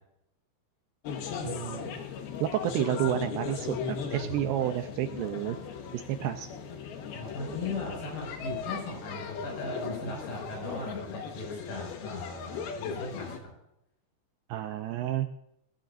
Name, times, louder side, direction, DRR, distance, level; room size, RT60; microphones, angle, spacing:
sound 1, 1.0-13.4, left 6 dB, 70° left, 3.0 m, -37 dB
voice 1, 1.4-2.0 2.4-5.6 5.9-6.5 14.5-15.3, right 12 dB, 80° right, 7 dB, 2.5 m, -30 dB
voice 2, 7.1-13.5, left 2 dB, 50° left, -1 dB, 7.5 m, -38 dB
21.0 x 13.0 x 2.6 m, 0.81 s
omnidirectional pair, 5.1 m